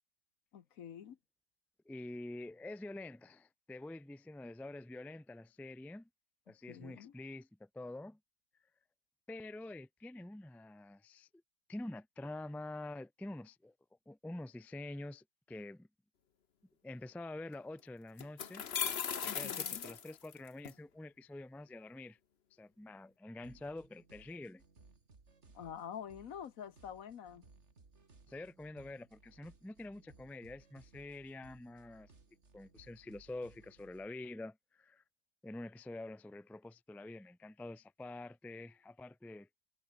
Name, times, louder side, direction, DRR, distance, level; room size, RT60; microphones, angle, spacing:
voice 1, 0.5-1.2 6.7-7.1 19.3-19.8 25.5-27.4, left 8 dB, 60° left, 1.4 m, -47 dB
voice 2, 1.8-6.1 6.5-8.2 9.3-11.3 11.7-13.7 14.1-15.9 16.8-18.7 19.2-22.2 22.5-24.6 28.3-32.1 32.5-35.0 35.4-39.5, left 2 dB, ahead, 0.4 m, -47 dB
sound 1, 17.5-17.6 18.2-20.7, left 7 dB, 45° left, 1.1 m, -38 dB
sound 2, 23.4-34.1, right 4 dB, 45° right, 2.8 m, -63 dB
omnidirectional pair, 1.7 m